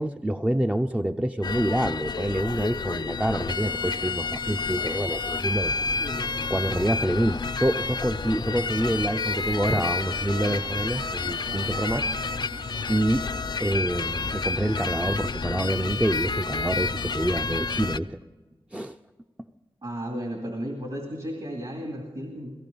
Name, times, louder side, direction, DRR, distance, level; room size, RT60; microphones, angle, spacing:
voice 1, 0.0-5.8 6.5-12.1 12.9-13.3 13.6-18.2 18.7-19.0, right 1 dB, 10° right, 6 dB, 0.4 m, -27 dB
sound 1, 1.4-18.0, left 4 dB, 50° left, 0.4 m, -30 dB
sound 2, 8.9-15.1, right 4 dB, 90° right, 0.6 m, -45 dB
voice 2, 19.8-22.5, equal, 60° right, 1 dB, 2.4 m, -34 dB
17.0 x 16.0 x 5.2 m, 1.3 s
wide cardioid pair, 55°, 9 cm